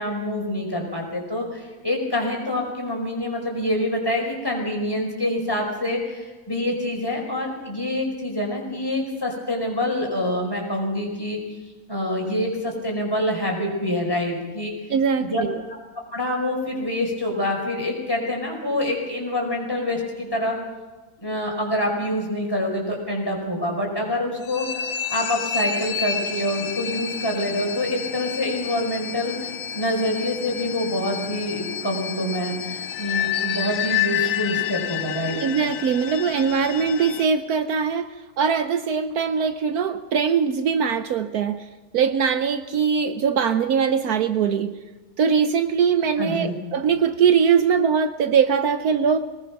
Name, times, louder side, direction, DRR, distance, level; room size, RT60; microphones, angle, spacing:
voice 1, 0.0-11.4 11.9-14.9 15.2-15.4 15.7-15.8 16.1-20.5 21.2-24.6 25.1-29.5 29.7-35.4 46.2-46.5, left 1 dB, 15° left, 0 dB, 5.2 m, -26 dB
voice 2, 14.9-15.6 35.4-41.7 41.9-44.7 45.2-49.2, right 6 dB, 70° right, 9 dB, 1.3 m, -21 dB
sound 1, 24.4-37.3, left 9 dB, 60° left, 1.2 m, -29 dB
23.5 x 19.5 x 6.0 m, 1.2 s
omnidirectional pair, 1.7 m